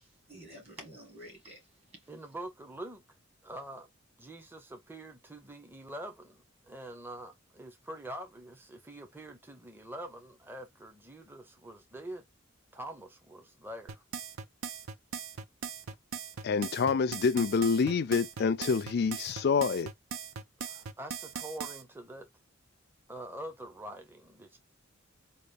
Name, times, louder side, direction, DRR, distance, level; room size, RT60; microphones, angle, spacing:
voice 1, 0.0-2.1, right 1 dB, 30° right, 1.7 m, -50 dB
voice 2, 2.1-3.0 3.4-3.9 4.2-12.2 12.7-14.0 20.6-22.3 23.1-24.6, right 1 dB, 10° right, 0.6 m, -45 dB
sound 1, 13.9-21.8, right 6 dB, 80° right, 0.6 m, -39 dB
voice 3, 16.4-19.9, left 5 dB, 50° left, 0.3 m, -27 dB
3.9 x 2.3 x 3.4 m
head